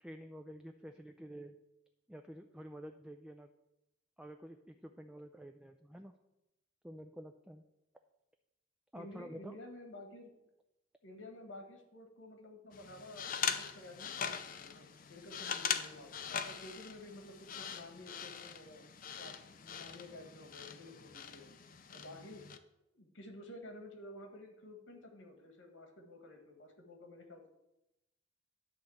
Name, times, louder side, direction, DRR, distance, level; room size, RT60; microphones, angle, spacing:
voice 1, 0.0-1.6 2.1-3.5 4.2-6.1 6.8-7.6 8.9-9.6, equal, 5° right, 5 dB, 0.3 m, -49 dB
voice 2, 8.9-10.3 11.0-16.1 16.4-18.8 19.2-21.5 21.9-22.4 22.9-27.5, left 1 dB, 85° left, 4 dB, 1.6 m, -52 dB
sound 1, 12.7-22.6, left 7 dB, 45° left, 0.5 m, -42 dB
10.5 x 3.8 x 7.1 m, 0.90 s
head